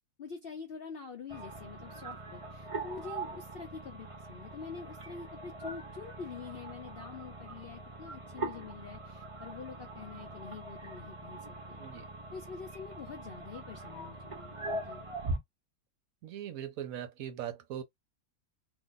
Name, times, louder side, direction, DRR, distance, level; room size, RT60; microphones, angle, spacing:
voice 1, 0.2-11.8 12.3-15.0, left 5 dB, 90° left, 0.5 m, -46 dB
sound 1, 1.3-15.4, right 2 dB, 40° right, 0.4 m, -42 dB
voice 2, 16.2-17.8, right 10 dB, 65° right, 0.9 m, -40 dB
2.8 x 2.5 x 3.8 m
omnidirectional pair, 1.9 m